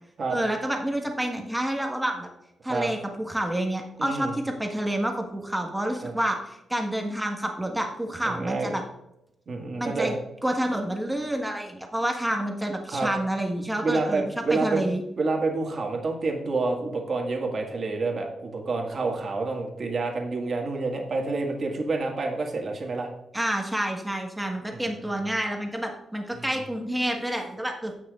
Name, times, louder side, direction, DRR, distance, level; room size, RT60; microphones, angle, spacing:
voice 1, 0.3-2.3 2.6-8.8 9.8-15.0 23.3-27.9, right 1 dB, 5° right, 2 dB, 1.4 m, -29 dB
voice 2, 4.0-4.3 6.0-6.1 8.2-8.7 9.5-10.2 12.9-13.1 13.8-14.9 15.2-23.1 24.7-25.2 26.4-26.5, right 3 dB, 45° right, 1 dB, 1.8 m, -28 dB
15.5 x 6.1 x 2.4 m, 0.87 s
cardioid pair, 115°, 0 cm